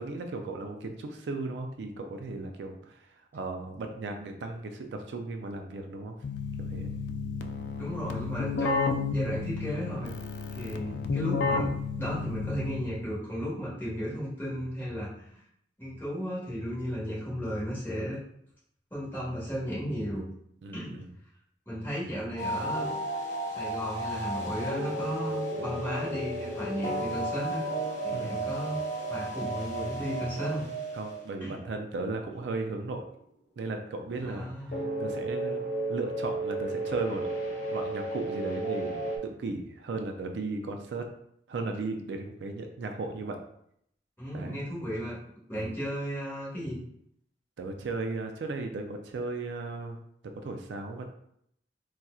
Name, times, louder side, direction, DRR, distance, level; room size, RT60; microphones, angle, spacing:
voice 1, 0.0-6.2 6.6-6.9 20.6-21.1 28.1-28.4 30.9-33.0 33.6-35.6 35.9-41.1 41.5-43.4 44.3-44.7 45.5-45.8 47.6-50.0 50.4-51.1, right 3 dB, 70° right, 5 dB, 0.4 m, -36 dB
Keyboard (musical), 6.2-13.1, left 4 dB, 75° left, 0.3 m, -32 dB
voice 2, 7.8-10.1 10.5-15.4 15.8-18.2 18.9-20.2 20.7-21.0 21.6-22.9 23.5-27.7 28.0-28.8 29.1-30.6 31.4-31.6 34.2-34.8 44.2-45.2 45.5-46.8, equal, 15° left, -8 dB, 1.4 m, -34 dB
sound 1, 22.4-31.6 34.7-39.2, right 1 dB, 45° left, 0.7 m, -33 dB
4.1 x 2.4 x 2.3 m, 0.71 s
head